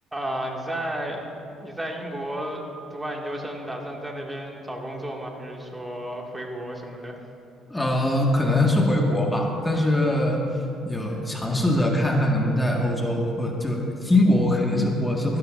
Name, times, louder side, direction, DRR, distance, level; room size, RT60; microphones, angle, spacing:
voice 1, 0.1-1.2 1.6-2.6 2.9-7.2, right 1 dB, 15° right, 0 dB, 2.1 m, -32 dB
voice 2, 7.7-15.4, left 1 dB, 10° left, 0 dB, 1.7 m, -22 dB
15.5 x 12.0 x 2.6 m, 2.6 s
supercardioid pair, 70°, 0 cm